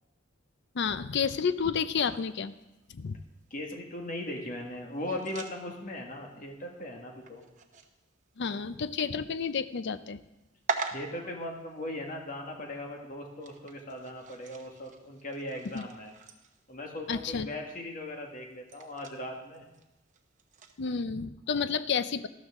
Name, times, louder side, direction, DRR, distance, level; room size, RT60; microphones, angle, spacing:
voice 1, 0.7-2.5 2.9-3.2 8.4-10.2 15.7-15.9 17.1-17.5 20.8-22.3, left 6 dB, 60° left, 14 dB, 0.5 m, -30 dB
sound 1, 2.0-20.8, right 4 dB, 40° right, 1.0 m, -45 dB
voice 2, 3.5-7.4 10.9-16.1 16.7-19.6 21.5-21.7, left 1 dB, 45° left, 1 dB, 1.8 m, -39 dB
13.5 x 12.5 x 3.7 m, 0.97 s
head